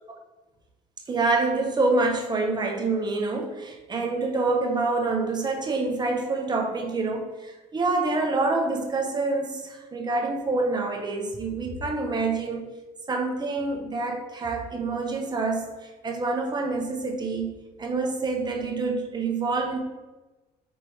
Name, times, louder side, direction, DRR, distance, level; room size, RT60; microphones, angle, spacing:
voice 1, 1.1-12.7 13.1-15.7 16.0-19.8, right 3 dB, 25° right, 2 dB, 0.6 m, -27 dB
4.4 x 3.2 x 2.7 m, 1.2 s
cardioid pair, 110°, 17 cm